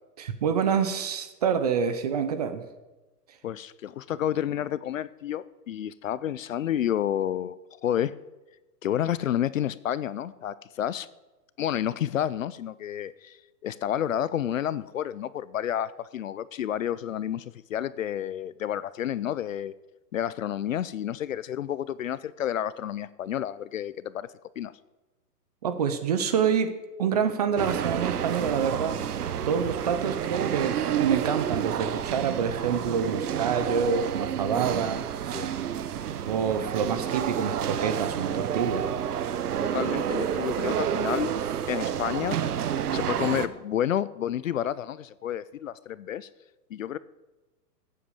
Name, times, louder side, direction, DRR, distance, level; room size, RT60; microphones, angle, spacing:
voice 1, 0.2-2.6 25.6-26.7 27.0-35.6 36.3-38.9, right 7 dB, 25° right, 10 dB, 0.7 m, -27 dB
voice 2, 3.4-7.6 7.8-8.1 8.8-11.1 11.6-19.7 20.1-24.3 24.6-24.7 34.6-34.7 35.3-35.5 39.6-41.3 41.7-42.4 42.9-46.3 46.7-47.0, left 10 dB, 55° left, 18 dB, 0.6 m, -30 dB
sound 1, 27.6-43.5, right 9 dB, 65° right, 1.1 m, -29 dB
14.5 x 8.5 x 7.2 m, 1.1 s
hypercardioid pair, 160°, 49 cm